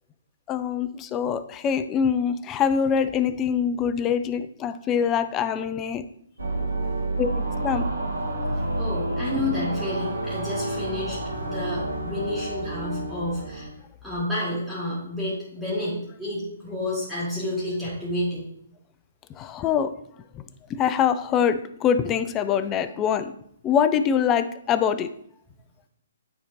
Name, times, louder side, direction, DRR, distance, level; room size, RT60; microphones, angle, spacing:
voice 1, 0.5-6.0 7.2-7.3 7.6-7.8 19.4-19.9 20.8-23.3 23.6-25.1, left 7 dB, 20° left, 11 dB, 0.4 m, -24 dB
sound 1, 6.4-13.7, right 1 dB, 75° right, 1.2 m, -29 dB
voice 2, 8.5-13.7 14.0-18.5, left 1 dB, 5° right, -9 dB, 2.7 m, -30 dB
9.5 x 4.3 x 2.7 m, 0.68 s
figure-of-eight pair, 130°, 0 cm